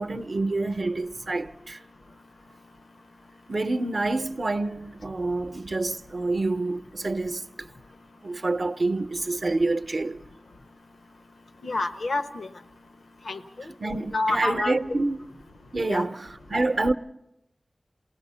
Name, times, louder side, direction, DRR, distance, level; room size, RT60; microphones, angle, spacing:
voice 1, 0.0-1.8 3.5-7.4 8.2-10.2 13.8-15.2 15.7-16.9, right 2 dB, 60° right, 0.6 m, -27 dB
voice 2, 11.6-12.5 13.2-13.7 14.1-14.8 15.8-16.1, left 2 dB, 85° left, 0.8 m, -28 dB
27.5 x 18.5 x 5.5 m
wide cardioid pair, 85°, 0 cm